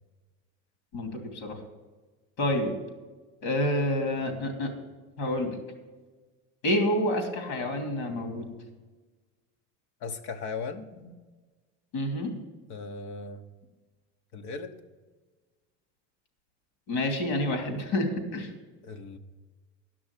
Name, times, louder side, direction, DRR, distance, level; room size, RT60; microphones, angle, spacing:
voice 1, 0.9-1.6 2.4-2.7 3.4-4.7 5.2-5.6 6.6-8.5 11.9-12.3 16.9-18.5, left 1 dB, 85° left, 5 dB, 2.9 m, -28 dB
voice 2, 10.0-10.9 12.7-13.5 14.3-14.7 18.8-19.2, left 4 dB, 60° left, 6 dB, 1.2 m, -37 dB
11.0 x 6.1 x 8.3 m, 1.3 s
cardioid pair, 140°, 34 cm